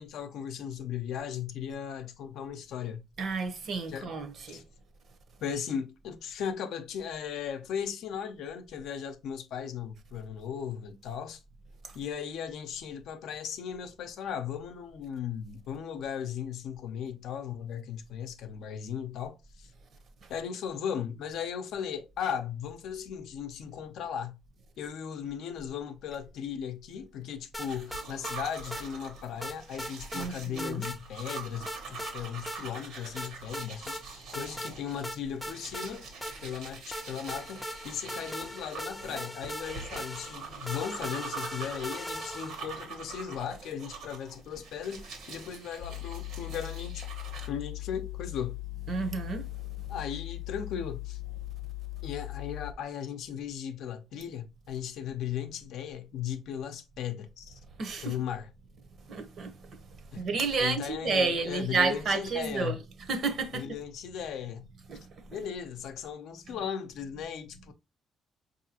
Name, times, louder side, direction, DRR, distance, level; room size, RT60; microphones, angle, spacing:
voice 1, 0.0-3.0 3.9-4.1 4.5-4.6 5.4-11.4 11.9-19.7 20.3-24.4 24.8-36.1 36.4-47.1 47.5-48.6 49.9-51.2 52.0-57.6 58.0-58.5 60.1-62.8 63.5-64.6 65.3-67.7, left 8 dB, 75° left, 0.6 m, -37 dB
voice 2, 3.2-4.6 30.1-30.9 48.9-49.5 57.8-58.2 59.1-59.6 60.2-62.8 63.1-63.7 64.9-65.0 65.3-65.4 66.5-66.6, right 4 dB, 45° right, 0.7 m, -30 dB
sound 1, 27.5-28.4 28.7-28.8 29.4-30.3 30.6-31.0 31.3-32.1 32.5-32.6 33.2-34.0 34.3-34.7 35.0-36.6 36.9-42.7, equal, 5° left, 0.4 m, -39 dB
sound 2, 27.6-47.5, right 5 dB, 80° right, 1.2 m, -44 dB
sound 3, 45.8-52.7, left 20 dB, 35° left, 0.7 m, -39 dB
4.8 x 2.7 x 2.8 m
cardioid pair, 145°, 0 cm